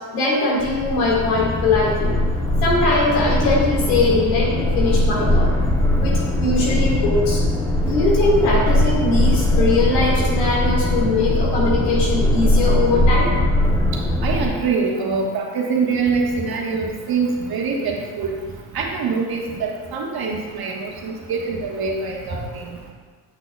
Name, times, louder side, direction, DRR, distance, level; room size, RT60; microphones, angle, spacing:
voice 1, 0.1-2.2 2.6-5.5 6.0-7.4 7.8-13.3, left 3 dB, 90° left, -4 dB, 2.0 m, -21 dB
basement low sustained, 0.6-14.5, left 1 dB, 5° left, 0.9 m, -20 dB
voice 2, 14.2-18.4 18.7-22.7, right 4 dB, 50° right, -1 dB, 1.4 m, -24 dB
8.7 x 6.1 x 2.3 m, 1.5 s
supercardioid pair, 75°, 49 cm